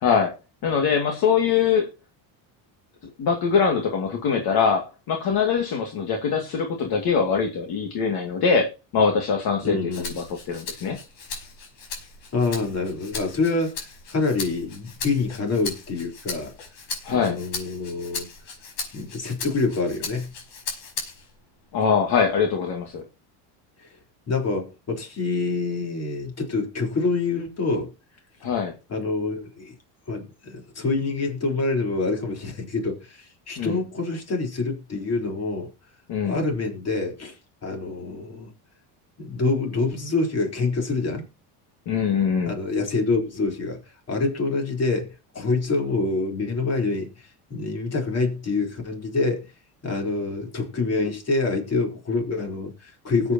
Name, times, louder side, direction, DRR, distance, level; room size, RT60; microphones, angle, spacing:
voice 1, 0.0-0.3 0.6-1.9 3.2-9.8 10.2-11.0 17.0-17.4 21.7-23.0 28.4-28.7 33.6-33.8 36.1-36.4 41.9-42.5, left 6 dB, 55° left, 2.2 m, -23 dB
voice 2, 9.6-10.2 12.3-16.5 17.1-18.3 18.9-20.3 23.8-23.9 24.3-27.9 28.9-29.8 30.1-35.7 36.2-37.4 37.6-38.5 39.2-41.3 42.4-49.5 49.8-53.3, left 3 dB, 35° left, 3.8 m, -26 dB
Rattle (instrument), 9.9-21.4 21.8-23.0, left 4 dB, 75° left, 5.1 m, -37 dB
19.5 x 8.3 x 2.9 m
cardioid pair, 120°, 44 cm